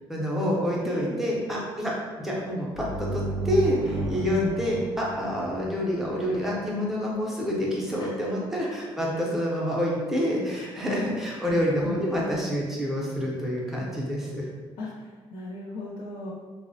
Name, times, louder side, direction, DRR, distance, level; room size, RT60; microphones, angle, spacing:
voice 1, 0.1-1.9 2.2-14.5, equal, 5° right, -5 dB, 0.5 m, -27 dB
voice 2, 0.8-1.2 3.9-4.2 8.0-8.2 10.6-11.1 14.8-16.3, left 1 dB, 65° left, -4 dB, 0.5 m, -38 dB
sound 1, 2.7-6.3, right 1 dB, 80° right, 0.5 m, -33 dB
3.5 x 2.0 x 2.6 m, 1.4 s
cardioid pair, 175°, 10 cm